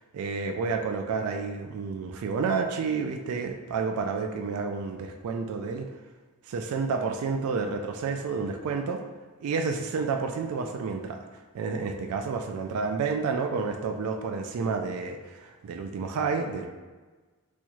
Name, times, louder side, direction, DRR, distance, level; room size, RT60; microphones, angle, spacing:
voice 1, 0.1-5.9 6.5-9.0 9.4-11.2 11.5-16.7, right 4 dB, 80° right, 5 dB, 0.3 m, -30 dB
4.3 x 2.3 x 2.9 m, 1.3 s
head